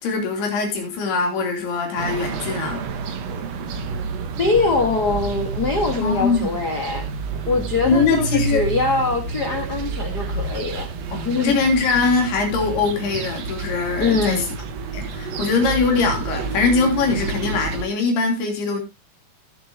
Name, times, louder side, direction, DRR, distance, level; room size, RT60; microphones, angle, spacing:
voice 1, 0.0-2.8 6.0-6.5 7.9-8.7 11.1-14.5 14.9-18.8, left 4 dB, 85° left, 5.1 m, -22 dB
sound 1, 2.0-17.8, right 4 dB, 60° right, 1.8 m, -29 dB
voice 2, 4.3-7.1 7.5-10.9 11.2-11.5 14.0-14.4, left 3 dB, 55° left, 1.0 m, -22 dB
18.5 x 7.5 x 2.8 m
omnidirectional pair, 4.5 m